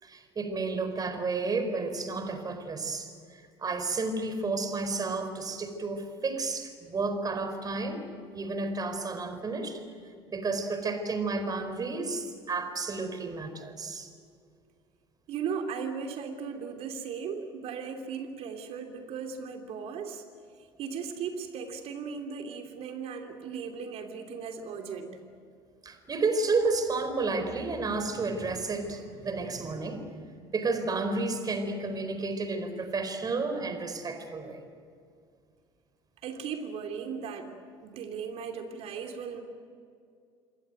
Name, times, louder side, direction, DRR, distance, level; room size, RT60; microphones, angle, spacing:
voice 1, 0.0-8.0 8.3-9.8 10.3-14.1 25.8-30.2 30.5-34.6, right 3 dB, 30° right, 9 dB, 4.7 m, -31 dB
voice 2, 15.3-20.2 20.8-25.2 36.2-37.5 37.8-39.4, right 6 dB, 55° right, 4 dB, 2.9 m, -37 dB
27.5 x 22.0 x 9.3 m, 2.3 s
hypercardioid pair, 65°, 13 cm